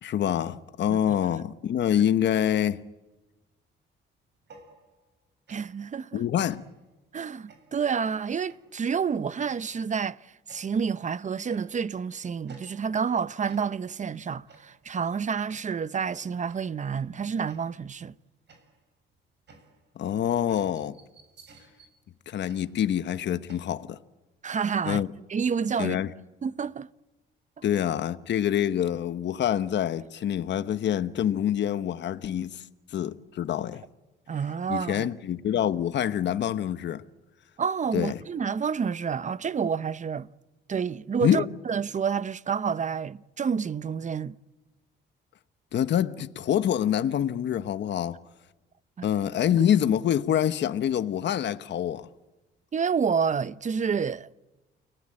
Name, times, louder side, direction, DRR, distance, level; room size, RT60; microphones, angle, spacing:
voice 1, 0.0-2.8 6.1-6.6 20.0-21.0 22.3-24.0 24.9-25.1 25.8-26.1 27.6-32.6 32.9-33.9 34.7-37.0 37.9-38.2 41.2-41.4 45.7-48.2 49.0-52.1, left 10 dB, 65° left, 1.1 m, -26 dB
sound 1, 4.4-5.2 5.5-5.9 6.5-6.9 7.5-7.9 8.5-8.8 9.5-9.9 10.5-11.0 11.5-12.0 12.5-13.1 13.5-14.0 14.5-14.9 15.5-15.9 16.5-16.8 17.5-18.0 18.5-23.6, right 3 dB, 60° right, 7.1 m, -55 dB
voice 2, 5.5-6.2 7.1-10.2 10.5-18.1 24.4-25.0 25.3-26.0 26.4-26.9 34.3-35.1 37.6-40.3 40.7-44.4 49.0-49.1 52.7-54.3, right 6 dB, 40° right, 0.9 m, -29 dB
29.5 x 20.0 x 8.8 m
cardioid pair, 90°, 20 cm